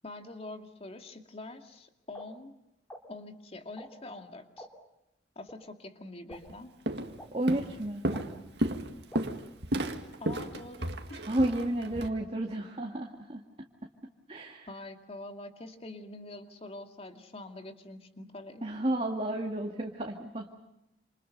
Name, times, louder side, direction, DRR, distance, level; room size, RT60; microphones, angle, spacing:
voice 1, 0.0-2.5 3.1-4.7 5.4-6.7 10.2-11.3 14.7-18.7, left 2 dB, 35° left, 6 dB, 2.4 m, -45 dB
sound 1, 2.1-2.2 2.9-3.0 3.8-3.9 4.6-4.7 5.5-5.6 6.3-6.4 7.2-7.3 8.1-8.2 9.1-9.2, equal, 10° left, 3.4 m, -45 dB
Walk footsteps, 6.3-6.5 6.9-7.2 7.5-12.1, right 1 dB, 70° right, 2.1 m, -33 dB
voice 2, 7.3-8.0 11.3-13.4 14.3-14.7 18.6-20.6, right 1 dB, 35° right, 1 dB, 2.1 m, -31 dB
28.0 x 28.0 x 5.5 m, 0.88 s
head